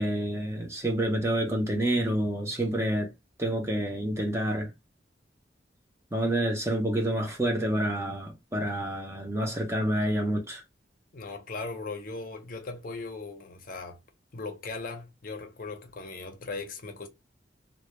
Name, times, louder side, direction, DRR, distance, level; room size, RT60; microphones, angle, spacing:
voice 1, 0.0-3.1 3.4-4.7 6.1-10.6, right 1 dB, 15° right, 0.5 m, -28 dB
voice 2, 11.1-14.0 14.3-17.1, left 3 dB, 50° left, 0.6 m, -38 dB
2.0 x 2.0 x 3.0 m
head